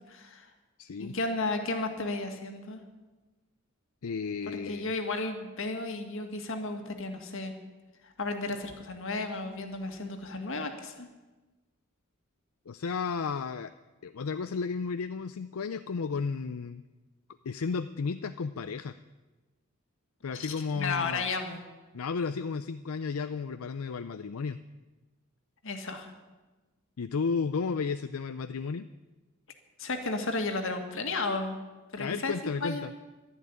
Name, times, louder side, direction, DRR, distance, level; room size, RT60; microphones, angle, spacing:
voice 1, 0.1-0.5 1.0-2.8 4.5-7.5 8.0-11.1 20.3-21.6 25.6-26.1 29.8-31.6 31.9-32.3 32.6-32.8, left 3 dB, 65° left, 5 dB, 2.0 m, -33 dB
voice 2, 0.8-1.1 4.0-4.9 12.7-13.7 14.0-16.8 17.4-18.9 20.2-21.3 21.9-24.6 27.0-28.9 32.0-32.9, left 5 dB, 85° left, 11 dB, 0.5 m, -33 dB
12.0 x 11.0 x 9.8 m, 1.2 s
head